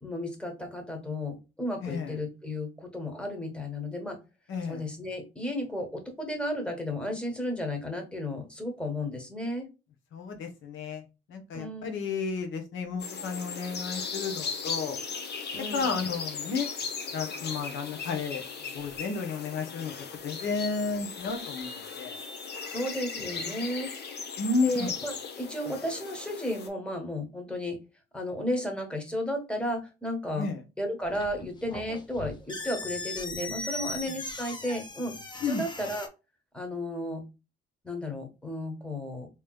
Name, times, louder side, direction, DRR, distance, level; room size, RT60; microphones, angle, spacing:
voice 1, 0.0-4.2 4.7-9.6 11.5-12.0 15.5-15.9 22.7-23.9 24.6-27.8 28.1-30.5 30.8-35.1 35.4-36.1 36.5-37.2 37.8-39.3, left 1 dB, 5° left, 3 dB, 1.3 m, -33 dB
voice 2, 1.8-2.2 4.5-4.8 10.1-15.0 15.7-16.7 17.1-19.9 20.2-22.2 24.4-24.9 30.4-30.6 33.9-34.1 35.4-35.6, left 4 dB, 75° left, 5 dB, 1.0 m, -32 dB
sound 1, 13.0-26.7, left 5 dB, 55° left, 0.8 m, -37 dB
sound 2, 31.0-36.1, left 2 dB, 20° left, 0.7 m, -38 dB
3.5 x 3.0 x 2.2 m, 0.28 s
cardioid pair, 90°, 20 cm